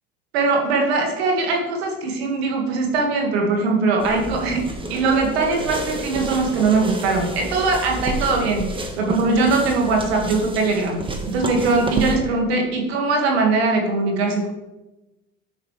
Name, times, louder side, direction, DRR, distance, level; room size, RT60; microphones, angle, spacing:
voice 1, 0.3-11.0 11.3-14.5, right 3 dB, 90° right, 1 dB, 1.9 m, -21 dB
sound 1, 4.0-12.2, right 2 dB, 15° right, 1.3 m, -30 dB
9.3 x 6.3 x 3.2 m, 1.0 s
supercardioid pair, 90°, 31 cm